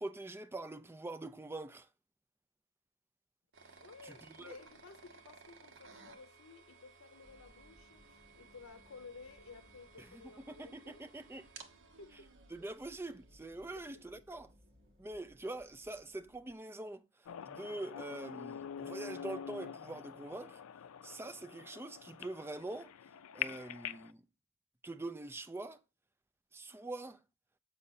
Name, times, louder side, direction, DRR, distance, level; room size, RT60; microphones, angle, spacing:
voice 1, 0.0-1.9 4.4-4.6 10.0-11.5 12.5-14.5 15.0-20.6 21.0-22.9 23.3-24.2 24.8-25.8 26.5-27.2, right 2 dB, 10° right, 0.4 m, -44 dB
sound 1, 3.5-14.3, right 4 dB, 65° right, 1.0 m, -59 dB
voice 2, 3.8-11.0 11.6-11.7 12.0-12.3 13.6-13.8 14.1-14.2, left 4 dB, 70° left, 0.8 m, -55 dB
sound 2, 7.2-16.5, equal, 45° right, 1.9 m, -65 dB
sound 3, 17.3-24.1, left 9 dB, 85° left, 0.4 m, -45 dB
7.6 x 5.1 x 4.1 m
head